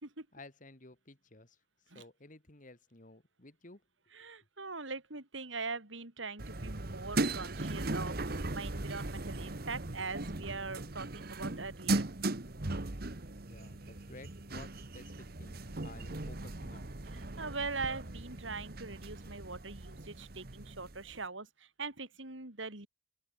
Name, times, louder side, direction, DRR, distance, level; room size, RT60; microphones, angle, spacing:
voice 1, 0.3-1.6 1.9-3.8 13.5-16.9, left 2 dB, 45° left, 2.3 m, -54 dB
voice 2, 4.1-12.1 17.1-22.9, right 4 dB, 80° right, 3.8 m, -42 dB
sound 1, 6.4-21.2, right 2 dB, 50° right, 1.5 m, -38 dB
head